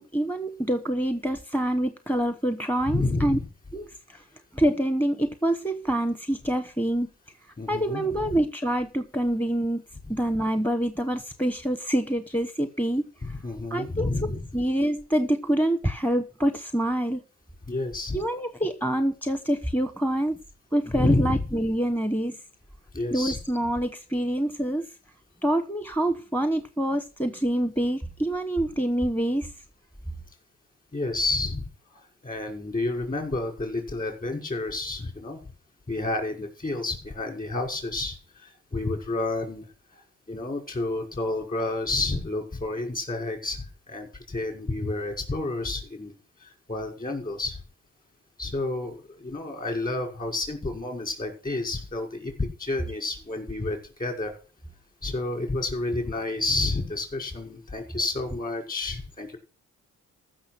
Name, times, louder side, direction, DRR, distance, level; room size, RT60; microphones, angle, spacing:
voice 1, 0.0-3.4 3.7-4.2 4.5-7.1 7.7-9.8 10.1-13.4 13.7-17.2 18.1-20.4 20.7-22.4 23.1-24.9 25.4-29.5, right 1 dB, 5° left, 1.1 m, -26 dB
voice 2, 2.9-3.5 7.6-8.0 8.3-8.4 13.2-14.4 17.7-18.2 20.9-21.4 22.9-23.4 30.9-31.7 31.9-35.4 35.9-38.2 38.4-39.7 40.3-46.1 46.4-47.6 48.4-54.3 55.0-59.4, left 2 dB, 30° left, 5.7 m, -30 dB
15.0 x 6.5 x 6.1 m
cardioid pair, 90°, 30 cm